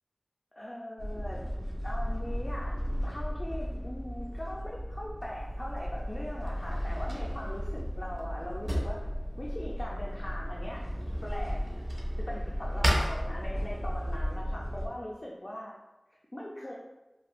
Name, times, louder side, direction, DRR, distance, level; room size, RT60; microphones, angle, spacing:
voice 1, 0.6-1.4 1.8-9.1 9.4-10.8 11.2-11.6 12.2-15.7 16.3-16.7, equal, 40° left, -4 dB, 0.4 m, -40 dB
sound 1, 1.0-14.9, equal, 60° left, 1.0 m, -35 dB
Drawer open or close, 5.2-13.9, equal, 45° right, 0.6 m, -37 dB
3.1 x 2.5 x 2.3 m, 1.0 s
wide cardioid pair, 45°, 0 cm